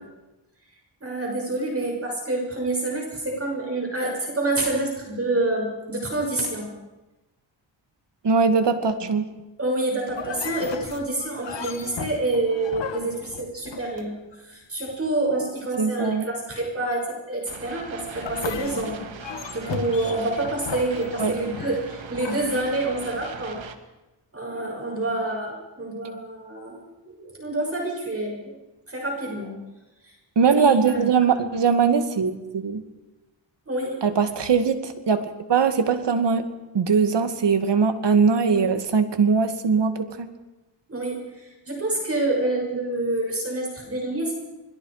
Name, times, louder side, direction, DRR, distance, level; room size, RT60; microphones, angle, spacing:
voice 1, 1.0-6.7 9.6-19.0 19.5-23.6 24.3-28.5 28.9-29.5 30.0-30.1 30.5-31.0 33.7-34.0 40.9-44.3, right 2 dB, 30° right, 0 dB, 6.8 m, -27 dB
voice 2, 8.2-9.3 15.8-16.3 21.2-21.3 30.4-32.8 34.0-36.5 36.7-40.3, right 5 dB, 65° right, 8 dB, 2.3 m, -21 dB
sound 1, 10.1-14.4 18.1-23.2, left 7 dB, 70° left, 1.7 m, -36 dB
sound 2, 17.5-23.8, right 7 dB, 85° right, 1.9 m, -41 dB
28.0 x 21.0 x 5.0 m, 1.1 s
cardioid pair, 85°, 45 cm